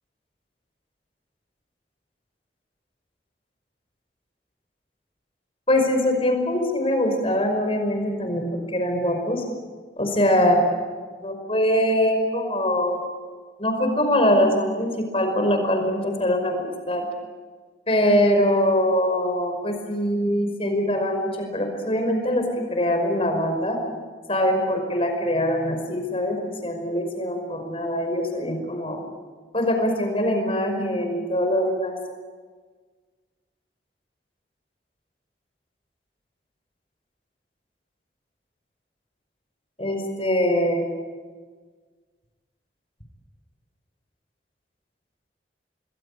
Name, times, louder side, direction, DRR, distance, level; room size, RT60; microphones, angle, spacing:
voice 1, 5.7-9.4 10.0-10.6 11.2-13.1 13.6-17.1 17.9-23.8 24.3-29.0 29.5-31.9 39.8-40.8, left 1 dB, 35° left, 4 dB, 5.4 m, -23 dB
27.5 x 21.0 x 8.6 m, 1.5 s
head